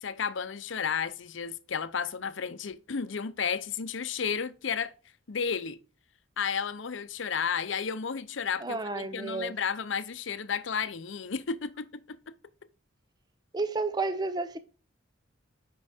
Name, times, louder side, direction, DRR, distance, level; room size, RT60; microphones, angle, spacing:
voice 1, 0.0-4.9 5.3-5.8 6.4-12.2, left 6 dB, 70° left, 0.6 m, -32 dB
voice 2, 8.6-9.5 13.5-14.6, right 3 dB, 20° right, 0.5 m, -31 dB
8.2 x 5.3 x 3.5 m
head